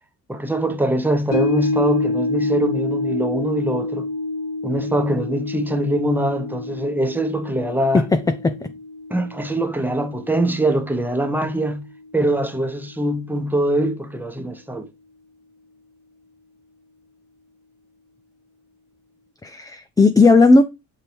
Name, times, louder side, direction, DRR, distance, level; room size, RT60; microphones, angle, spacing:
voice 1, 0.3-4.1 4.6-8.1 9.1-11.9 12.1-14.9, right 1 dB, 5° right, 0.9 m, -23 dB
sound 1, 1.3-11.7 12.1-12.2, left 2 dB, 75° left, 2.2 m, -28 dB
voice 2, 19.4-20.6, left 3 dB, 10° left, 0.4 m, -14 dB
6.7 x 4.5 x 3.4 m
cardioid pair, 105°, 34 cm